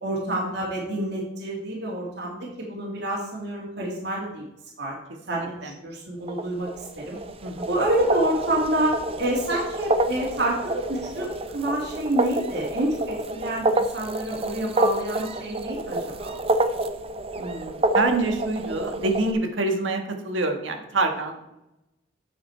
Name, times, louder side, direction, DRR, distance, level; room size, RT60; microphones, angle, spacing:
voice 1, 0.0-4.4 4.8-4.9 5.3-6.7 7.0-7.2 7.7-8.9 9.2-11.3 11.5-16.4, right 1 dB, 60° right, -2 dB, 2.2 m, -28 dB
voice 2, 5.3-5.7 7.4-7.7 17.4-21.5, right 2 dB, 80° right, 4 dB, 1.5 m, -27 dB
sound 1, 6.3-19.3, right 2 dB, 30° right, 0.5 m, -28 dB
8.6 x 6.7 x 4.4 m, 0.89 s
head